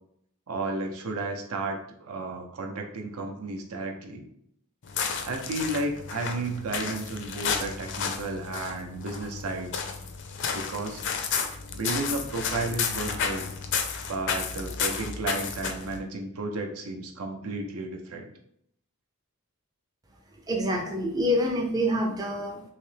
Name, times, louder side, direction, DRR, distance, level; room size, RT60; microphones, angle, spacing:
voice 1, 0.5-4.3 5.2-9.8 10.5-11.0 11.7-13.5 14.1-18.3, right 2 dB, 85° right, 3 dB, 0.6 m, -33 dB
sound 1, 4.8-16.0, left 6 dB, 55° left, 0.4 m, -32 dB
voice 2, 20.5-22.6, equal, 15° right, 1 dB, 0.4 m, -26 dB
3.2 x 2.8 x 3.2 m, 0.70 s
head